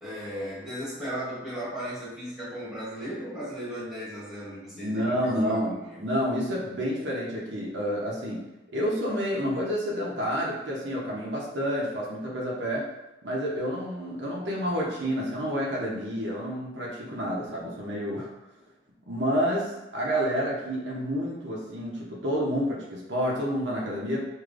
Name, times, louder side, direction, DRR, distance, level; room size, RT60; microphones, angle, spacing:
voice 1, 0.0-6.0, equal, 5° right, -10 dB, 1.3 m, -36 dB
voice 2, 4.7-8.4 8.7-12.8 13.2-18.3 19.1-24.2, equal, 70° right, -4 dB, 0.8 m, -29 dB
4.8 x 2.7 x 2.5 m, 0.95 s
head